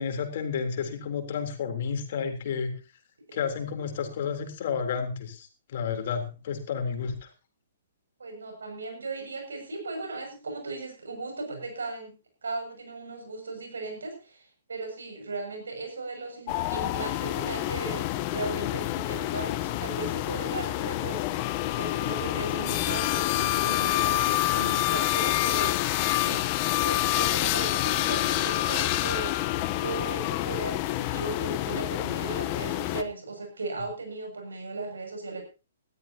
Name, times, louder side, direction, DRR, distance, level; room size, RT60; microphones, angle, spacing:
voice 1, 0.0-2.7 3.3-7.3, left 6 dB, 50° left, 5 dB, 3.5 m, -31 dB
voice 2, 8.2-12.1 12.4-21.2 21.7-25.8 26.2-26.5 26.8-29.4 29.8-35.4, right 3 dB, 75° right, 4 dB, 6.9 m, -37 dB
Smaller bench saw with wood dust extractor, 16.5-33.0, left 15 dB, 35° left, 1.0 m, -27 dB
20.0 x 13.5 x 2.9 m, 0.31 s
figure-of-eight pair, 120°, 0 cm